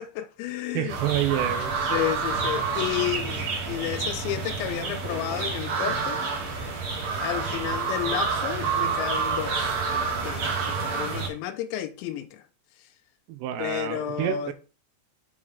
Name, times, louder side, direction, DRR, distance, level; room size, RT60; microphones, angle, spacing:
voice 1, 0.0-1.0 1.9-6.2 6.5-6.7 7.2-9.8 10.2-12.4 13.6-14.5, left 12 dB, 90° left, 3.0 m, -32 dB
voice 2, 0.7-1.8 13.3-14.5, right 12 dB, 80° right, 2.9 m, -28 dB
sound 1, 0.9-11.3, right 4 dB, 45° right, 2.6 m, -28 dB
6.4 x 5.7 x 4.9 m
omnidirectional pair, 5.1 m